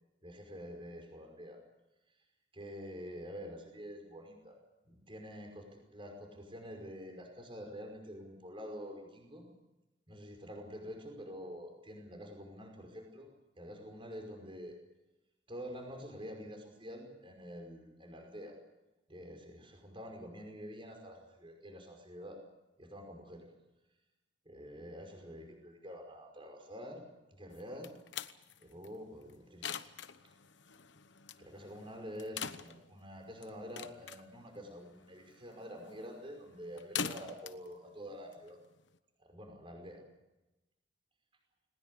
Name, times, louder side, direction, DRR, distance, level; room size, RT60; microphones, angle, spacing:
voice 1, 0.2-1.6 2.5-4.6 4.9-9.5 10.1-13.3 13.6-14.7 15.5-18.6 19.1-22.4 22.8-23.5 24.5-27.0 27.3-28.0 28.6-29.7 31.4-38.6 39.2-40.0, equal, 25° right, 3 dB, 5.4 m, -47 dB
sound 1, 27.5-39.0, left 7 dB, 65° left, 1.0 m, -45 dB
20.0 x 20.0 x 8.5 m, 0.99 s
head